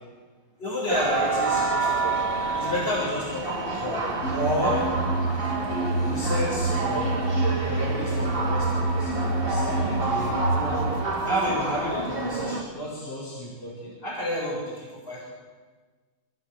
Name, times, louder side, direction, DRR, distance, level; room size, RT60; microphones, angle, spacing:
voice 1, 0.6-2.2 2.6-4.0 4.3-4.8 6.1-7.1 7.6-9.1 9.4-10.9 11.2-15.3, equal, 25° left, -4 dB, 7.3 m, -31 dB
sound 1, 0.9-12.6, right 3 dB, 25° right, 3.2 m, -28 dB
sound 2, 4.2-11.1, right 2 dB, 45° left, 1.6 m, -27 dB
29.0 x 16.0 x 8.5 m, 1.4 s
omnidirectional pair, 2.2 m